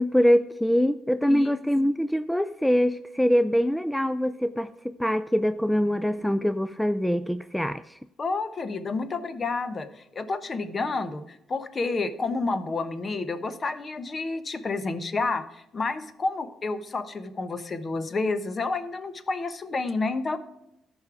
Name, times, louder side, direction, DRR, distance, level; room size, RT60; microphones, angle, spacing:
voice 1, 0.0-8.0, equal, 5° left, 0.4 m, -24 dB
voice 2, 8.2-15.4 15.7-20.4, left 3 dB, 35° left, 1.0 m, -30 dB
14.0 x 5.5 x 4.8 m
cardioid pair, 90°, 0 cm